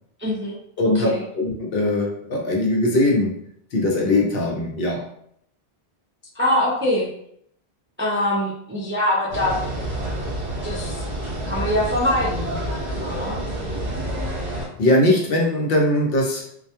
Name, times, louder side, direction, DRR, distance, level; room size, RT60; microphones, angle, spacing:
voice 1, 0.2-0.6 0.9-1.2 6.3-7.1 8.0-9.6 10.6-11.0 11.5-12.6 13.0-13.4, left 1 dB, 20° right, -6 dB, 0.3 m, -23 dB
voice 2, 0.8-3.3 3.7-5.1 14.8-16.5, left 1 dB, 65° left, -1 dB, 0.7 m, -20 dB
sound 1, 9.3-14.7, right 1 dB, 45° right, 0.9 m, -28 dB
2.2 x 2.2 x 2.8 m, 0.69 s
omnidirectional pair, 1.1 m